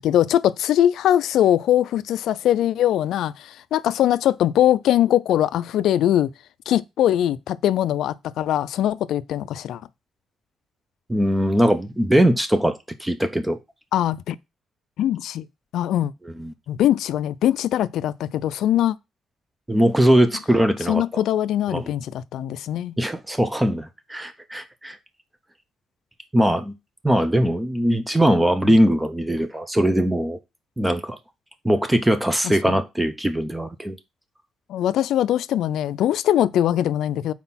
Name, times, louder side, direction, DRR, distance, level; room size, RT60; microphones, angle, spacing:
voice 1, 0.0-6.3 6.7-9.8 13.9-14.4 15.0-15.5 15.7-16.1 16.7-19.0 20.9-23.0 28.6-28.8 32.7-32.8 34.7-37.3, left 11 dB, 80° left, 0.3 m, -21 dB
voice 2, 11.1-13.6 16.4-16.5 19.7-21.2 21.7-21.9 23.0-25.0 26.3-26.7 27.0-30.4 30.8-31.2 31.6-34.0, right 1 dB, 10° right, 0.6 m, -20 dB
4.3 x 4.1 x 5.6 m
cardioid pair, 90°, 0 cm